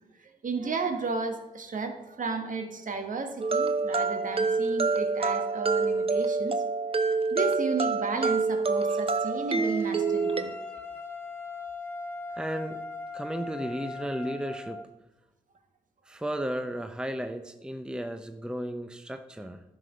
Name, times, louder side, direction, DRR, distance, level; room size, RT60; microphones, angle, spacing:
voice 1, 0.2-6.6 7.0-10.5, right 4 dB, 45° right, 7 dB, 1.5 m, -33 dB
sound 1, 3.4-10.4, right 4 dB, 30° right, 0.9 m, -27 dB
sound 2, 9.1-14.8, left 3 dB, 10° left, 2.0 m, -40 dB
voice 2, 12.4-12.8 13.1-14.8 16.1-19.6, equal, 5° right, 8 dB, 0.8 m, -34 dB
11.0 x 6.9 x 5.2 m, 0.99 s
hypercardioid pair, 45°, 18 cm